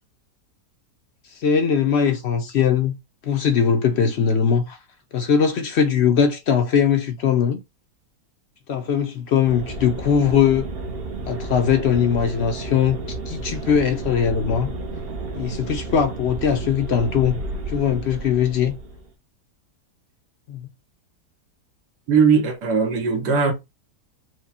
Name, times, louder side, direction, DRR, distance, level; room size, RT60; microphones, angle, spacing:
voice 1, 1.4-2.9 3.2-4.8 5.1-7.6 8.7-10.7 11.3-14.7 15.3-17.4 17.7-18.7 20.5-20.7, left 7 dB, 65° left, 0.6 m, -20 dB
sound 1, 9.4-19.1, right 2 dB, 50° right, 0.7 m, -32 dB
voice 2, 22.1-23.5, right 5 dB, 85° right, 1.6 m, -19 dB
4.7 x 2.1 x 4.2 m
omnidirectional pair, 1.7 m